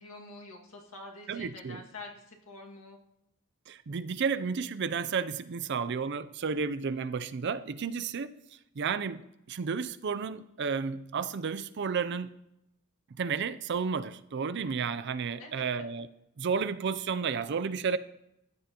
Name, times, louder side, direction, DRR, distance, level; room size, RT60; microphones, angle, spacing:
voice 1, 0.0-3.0 15.4-15.6, left 2 dB, 90° left, 2.0 m, -47 dB
voice 2, 1.3-1.8 3.7-8.4 8.8-12.4 13.1-16.1 16.4-18.0, right 5 dB, 55° right, 0.5 m, -32 dB
14.5 x 10.0 x 2.9 m
head